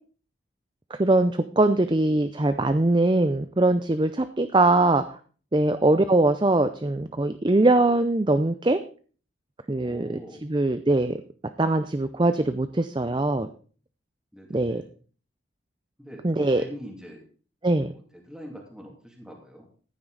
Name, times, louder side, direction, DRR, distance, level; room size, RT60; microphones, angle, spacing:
voice 1, 0.9-5.2 5.5-8.8 9.7-11.2 11.6-13.5 14.5-14.8 16.2-16.6 17.6-17.9, right 2 dB, 25° right, 10 dB, 0.5 m, -22 dB
voice 2, 9.8-10.5 14.3-14.9 16.0-17.3 17.8-19.6, equal, 5° right, 0 dB, 2.5 m, -44 dB
14.5 x 9.1 x 4.0 m, 0.41 s
head